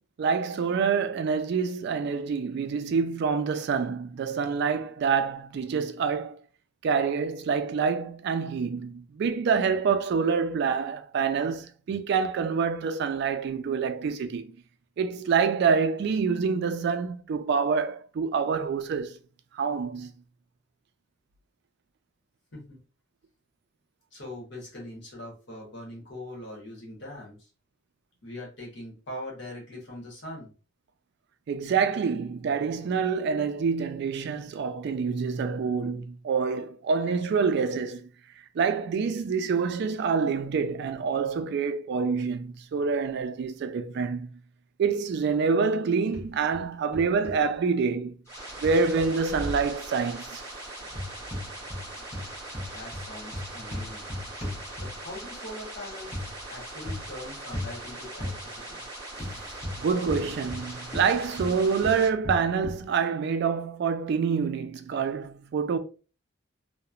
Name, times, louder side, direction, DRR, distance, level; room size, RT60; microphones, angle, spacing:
voice 1, 0.2-6.4 6.8-14.5 15.0-19.2 19.5-20.1 31.5-38.1 38.5-44.3 44.8-48.1 48.6-50.4 59.8-65.8, right 5 dB, 60° right, 0.3 m, -27 dB
voice 2, 24.1-27.5 28.2-30.5 52.7-54.1 54.8-58.8, left 1 dB, 65° left, 1.1 m, -42 dB
sound 1, 46.1-46.6 46.9-47.4 48.6-49.6 50.9-51.9 52.1-55.1 56.1-56.3 56.8-57.1 57.5-57.8 58.2-58.4 59.2-60.7 60.9-62.8, left 1 dB, 30° left, 1.0 m, -36 dB
sound 2, 48.2-62.1, right 1 dB, 15° left, 1.5 m, -41 dB
2.9 x 2.1 x 2.4 m
head